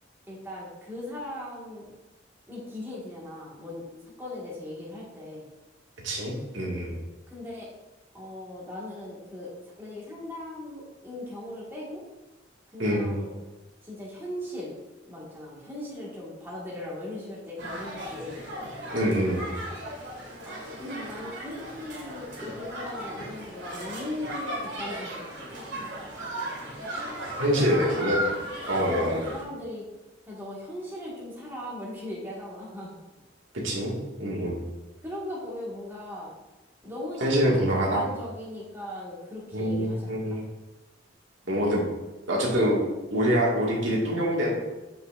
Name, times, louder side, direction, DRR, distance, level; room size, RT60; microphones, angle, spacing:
voice 1, 0.3-1.8 2.5-3.8 4.2-5.5 7.3-7.7 8.1-9.5 9.8-12.0 12.7-13.4 13.8-14.7 15.1-18.4 20.4-25.6 27.6-28.2 29.0-29.8 30.3-32.9 35.0-36.3 36.8-40.4, left 1 dB, 10° right, -6 dB, 1.6 m, -38 dB
voice 2, 6.0-6.9 12.8-13.2 18.9-19.5 27.2-28.2 28.7-29.2 33.6-34.6 37.2-38.0 39.5-40.4 41.5-41.8 42.3-42.8 43.1-44.5, equal, 90° right, -3 dB, 1.8 m, -25 dB
sound 1, 17.6-29.4, right 1 dB, 65° right, 2.0 m, -36 dB
7.9 x 5.5 x 2.5 m, 1.1 s
head